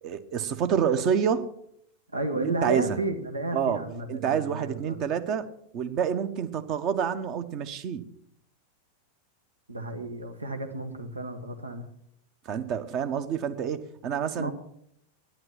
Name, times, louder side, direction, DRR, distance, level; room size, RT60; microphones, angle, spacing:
voice 1, 0.0-1.5 2.3-3.0 3.5-3.8 4.1-5.5 5.7-8.1 12.4-14.5, right 7 dB, 40° right, 1.1 m, -28 dB
voice 2, 2.1-5.0 9.7-11.9 14.4-14.5, right 2 dB, 80° right, 1.4 m, -32 dB
11.0 x 10.5 x 7.1 m
figure-of-eight pair, 90°, 0 cm